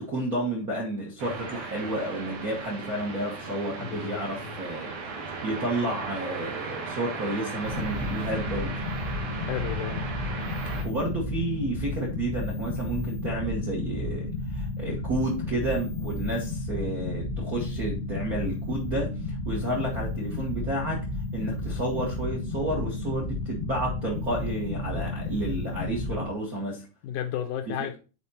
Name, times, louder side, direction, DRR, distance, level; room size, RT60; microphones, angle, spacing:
voice 1, 0.0-4.9 5.4-8.8 10.6-21.0 21.3-26.9 27.7-27.9, right 1 dB, 50° right, 1.0 m, -31 dB
sound 1, 1.2-10.8, right 4 dB, 85° right, 3.5 m, -37 dB
voice 2, 3.8-4.6 9.4-10.0 27.0-28.0, left 9 dB, 75° left, 2.0 m, -33 dB
sound 2, 7.6-26.3, left 2 dB, 60° left, 1.0 m, -32 dB
8.3 x 4.5 x 4.2 m
omnidirectional pair, 4.0 m